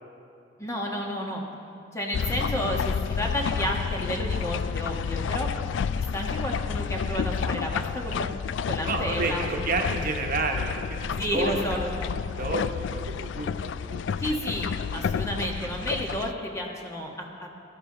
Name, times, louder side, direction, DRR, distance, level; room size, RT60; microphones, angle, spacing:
voice 1, 0.6-1.4 1.9-5.5 6.1-8.3 8.7-9.7 11.2-12.1 14.2-17.5, equal, 15° left, 0 dB, 1.4 m, -31 dB
sound 1, 2.1-16.3, left 6 dB, 75° left, 0.3 m, -30 dB
voice 2, 8.9-11.6 12.4-14.0, right 3 dB, 50° right, 2 dB, 1.2 m, -30 dB
17.0 x 12.5 x 3.9 m, 2.5 s
head